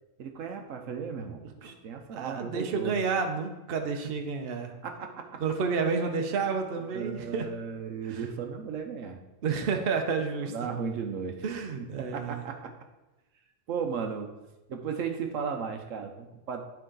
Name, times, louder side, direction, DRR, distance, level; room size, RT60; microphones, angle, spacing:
voice 1, 0.2-2.9 4.8-5.4 6.9-9.2 10.4-11.4 12.0-12.7 13.7-14.3 14.7-16.6, right 6 dB, 70° right, 5 dB, 1.1 m, -35 dB
voice 2, 2.1-4.7 5.4-7.5 8.0-8.2 9.4-10.5 11.4-12.4, right 5 dB, 50° right, 4 dB, 0.9 m, -30 dB
10.5 x 4.6 x 3.8 m, 1.0 s
omnidirectional pair, 1.4 m